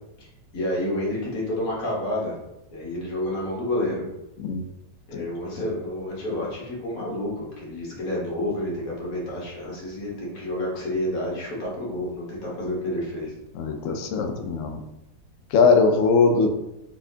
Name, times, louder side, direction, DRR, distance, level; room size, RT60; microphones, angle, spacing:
voice 1, 0.5-2.4 2.7-4.1 5.1-13.3, left 1 dB, 55° left, -4 dB, 1.7 m, -29 dB
voice 2, 13.5-14.8 15.5-16.5, left 4 dB, 90° left, 4 dB, 0.7 m, -20 dB
4.1 x 3.6 x 2.7 m, 0.89 s
omnidirectional pair, 1.9 m